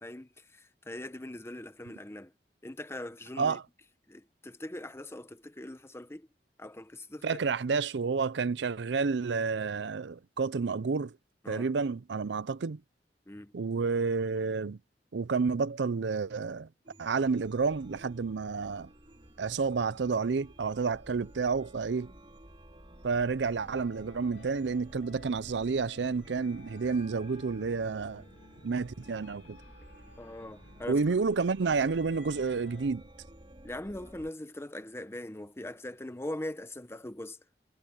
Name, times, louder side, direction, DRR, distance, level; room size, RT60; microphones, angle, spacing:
voice 1, 0.0-2.3 2.6-3.6 4.1-6.3 6.6-7.4 11.4-11.7 13.3-13.5 30.2-31.0 33.6-37.4, left 1 dB, 15° left, 0.9 m, -41 dB
voice 2, 7.2-11.1 11.5-12.8 13.5-14.8 15.1-16.7 17.0-18.9 19.4-22.1 23.0-28.2 28.6-29.6 30.9-33.0, right 4 dB, 75° right, 0.5 m, -30 dB
Chime, 16.8-34.3, right 1 dB, 30° right, 4.6 m, -53 dB
sound 1, 23.5-32.9, left 3 dB, 85° left, 3.2 m, -56 dB
head